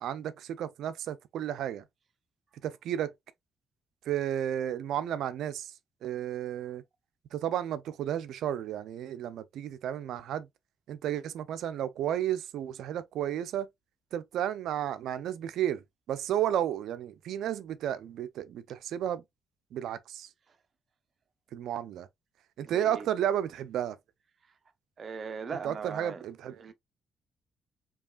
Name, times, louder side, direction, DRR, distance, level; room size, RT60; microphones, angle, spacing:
voice 1, 0.0-1.8 2.6-3.1 4.1-5.7 6.0-6.8 7.3-10.5 10.9-13.7 14.1-19.2 19.7-20.3 21.5-22.1 22.6-24.0 25.6-26.6, right 10 dB, 80° right, 0.4 m, -32 dB
voice 2, 22.6-23.1 25.0-26.2 26.6-26.7, right 5 dB, 45° right, 0.7 m, -39 dB
4.6 x 3.0 x 2.3 m
cardioid pair, 90°, 0 cm